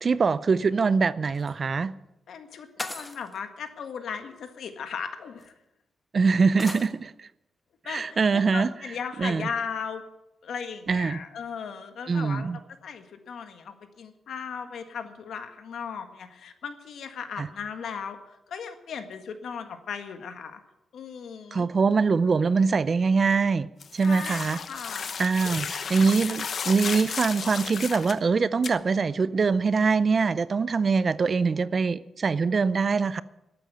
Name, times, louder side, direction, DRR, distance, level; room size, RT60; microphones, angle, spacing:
voice 1, 0.0-1.9 6.1-7.3 7.9-8.7 9.2-9.5 10.9-11.2 12.1-12.6 17.4-17.5 21.5-23.7 23.9-24.6 25.2-33.2, right 4 dB, 40° right, 0.5 m, -23 dB
sound 1, 1.3-1.5 2.8-3.4 4.6-4.7 5.4-5.5 6.6-6.9, left 1 dB, 15° left, 1.1 m, -37 dB
voice 2, 2.3-5.5 7.8-10.0 10.4-12.5 12.8-20.6 20.9-21.7 24.0-25.1 25.8-25.9, left 6 dB, 75° left, 1.7 m, -37 dB
sound 2, 23.8-28.2 28.6-28.7, left 6 dB, 50° left, 1.0 m, -33 dB
12.5 x 9.1 x 9.1 m
wide cardioid pair, 135°, 0 cm